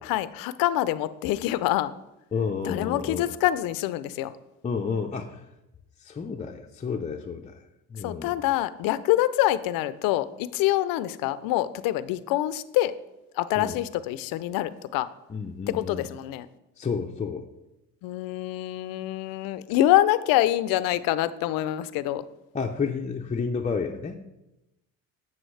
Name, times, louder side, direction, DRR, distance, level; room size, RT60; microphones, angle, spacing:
voice 1, 0.0-1.9 2.6-4.3 8.0-12.9 13.3-15.1 15.7-16.5 18.0-22.2, left 14 dB, 85° left, 15 dB, 0.5 m, -25 dB
voice 2, 2.3-3.3 4.6-5.5 6.0-7.6 7.9-8.4 13.6-13.8 15.3-16.1 16.8-17.5 22.5-24.2, left 5 dB, 20° left, 1 dB, 0.5 m, -31 dB
7.8 x 7.3 x 3.2 m, 0.93 s
cardioid pair, 90°, 34 cm